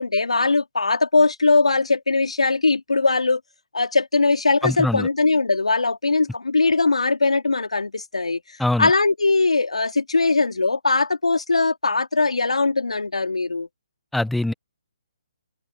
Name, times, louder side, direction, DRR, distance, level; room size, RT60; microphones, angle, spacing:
voice 1, 0.0-3.4 3.7-13.7, left 3 dB, 75° left, 3.7 m, -20 dB
voice 2, 4.6-5.1 8.6-8.9 14.1-14.5, left 1 dB, ahead, 1.4 m, -23 dB
open air
figure-of-eight pair, 140°, 3 cm